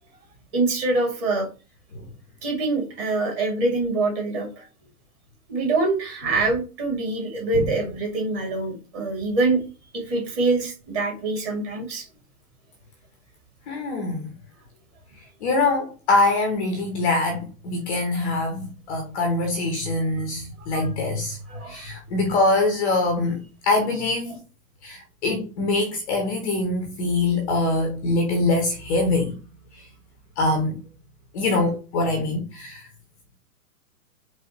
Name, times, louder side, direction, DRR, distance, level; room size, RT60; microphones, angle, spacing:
voice 1, 0.5-1.5 2.4-4.7 5.5-9.6 9.9-12.0 20.7-20.9 21.5-21.8, right 3 dB, 35° right, 2.3 m, -25 dB
voice 2, 13.7-14.3 15.2-21.4 21.7-24.4 24.8-29.4 29.7-29.9 30.4-30.8 31.3-32.9, left 2 dB, 5° left, 0.3 m, -24 dB
4.8 x 3.0 x 2.9 m
figure-of-eight pair, 115°, 44 cm